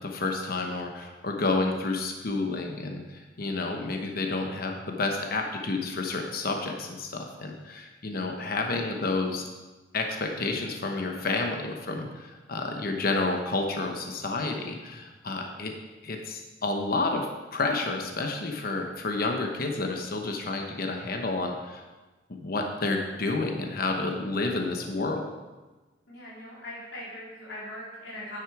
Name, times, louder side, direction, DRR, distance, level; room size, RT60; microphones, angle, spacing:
voice 1, 0.0-9.4 9.9-15.7 16.0-21.8 22.3-25.3, left 3 dB, 55° left, 3 dB, 0.9 m, -30 dB
voice 2, 26.1-28.4, left 1 dB, 75° left, -6 dB, 3.4 m, -40 dB
9.6 x 7.8 x 4.8 m, 1.2 s
head